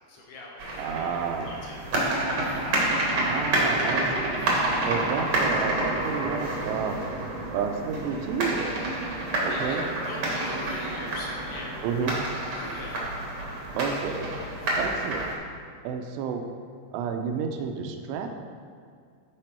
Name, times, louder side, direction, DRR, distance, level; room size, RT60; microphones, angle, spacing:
voice 1, 0.1-2.6 9.2-12.3 12.5-13.1, left 2 dB, 75° left, -2 dB, 2.4 m, -42 dB
sound 1, 0.6-15.3, right 1 dB, 70° right, 1.3 m, -28 dB
voice 2, 0.8-1.6 3.2-4.4 4.8-7.0 7.5-8.9 9.4-9.8 11.8-12.2 13.7-14.3 14.8-15.3 15.8-16.4 16.9-18.3, right 6 dB, 85° right, 4 dB, 2.6 m, -30 dB
12.0 x 5.1 x 4.5 m, 2.2 s
omnidirectional pair, 5.4 m